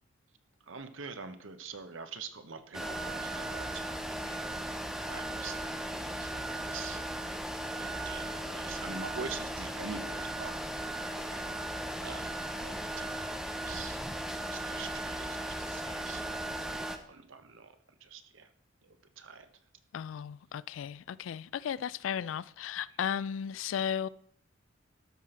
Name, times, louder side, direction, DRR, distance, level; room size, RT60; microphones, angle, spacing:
voice 1, 0.7-4.8 5.1-10.5 11.1-11.4 12.0-14.0 14.5-17.7 18.0-18.5 18.8-19.5, right 5 dB, 85° right, 0.9 m, -45 dB
sound 1, 2.7-17.0, right 1 dB, 5° right, 0.7 m, -37 dB
voice 2, 19.9-24.1, left 8 dB, 80° left, 0.3 m, -35 dB
13.0 x 5.8 x 4.4 m
head